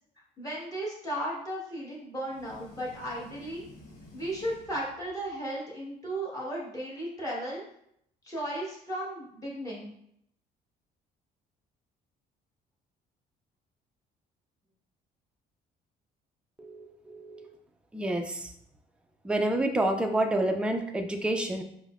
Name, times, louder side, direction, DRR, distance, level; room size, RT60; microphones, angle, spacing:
voice 1, 0.4-3.6 4.1-7.6 8.2-9.9, right 1 dB, 20° left, -5 dB, 1.2 m, -35 dB
sound 1, 2.3-5.4, left 1 dB, 75° left, 1.1 m, -52 dB
voice 2, 16.6-17.5 17.9-18.5 19.2-21.6, right 1 dB, 5° right, 4 dB, 0.3 m, -29 dB
5.1 x 2.1 x 2.3 m, 0.72 s
cardioid pair, 110°, 17 cm